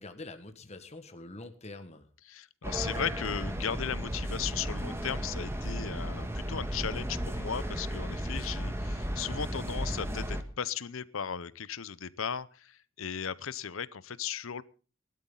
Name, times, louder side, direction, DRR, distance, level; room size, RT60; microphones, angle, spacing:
voice 1, 0.0-2.1, left 2 dB, 30° left, 8 dB, 1.5 m, -45 dB
voice 2, 2.2-14.6, left 7 dB, 70° left, 18 dB, 0.7 m, -36 dB
sound 1, 2.6-10.4, equal, 10° right, 1.5 m, -34 dB
18.5 x 12.5 x 3.9 m, 0.37 s
head